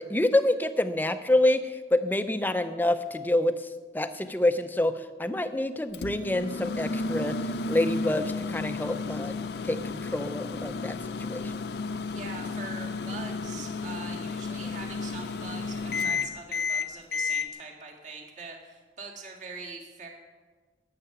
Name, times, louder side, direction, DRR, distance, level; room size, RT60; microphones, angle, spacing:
voice 1, 0.0-3.7 3.9-7.3 7.7-9.3 9.6-11.7, left 1 dB, 10° left, 10 dB, 0.5 m, -27 dB
Microwave oven, 5.9-17.5, left 4 dB, 70° left, 0.5 m, -32 dB
voice 2, 12.1-20.1, right 4 dB, 45° right, 0 dB, 1.9 m, -43 dB
11.5 x 6.7 x 8.8 m, 1.4 s
head